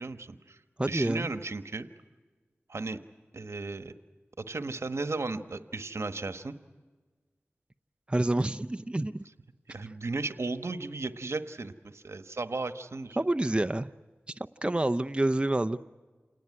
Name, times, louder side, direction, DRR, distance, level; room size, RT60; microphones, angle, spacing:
voice 1, 0.0-1.9 2.7-3.0 3.3-3.9 4.4-6.6 9.7-13.3, right 3 dB, 75° right, 10 dB, 1.3 m, -35 dB
voice 2, 0.8-1.3 8.1-9.2 13.2-13.9 14.3-14.4 14.6-15.8, right 1 dB, 25° right, 10 dB, 0.7 m, -27 dB
28.5 x 18.5 x 9.8 m, 1.4 s
wide cardioid pair, 45°, 5 cm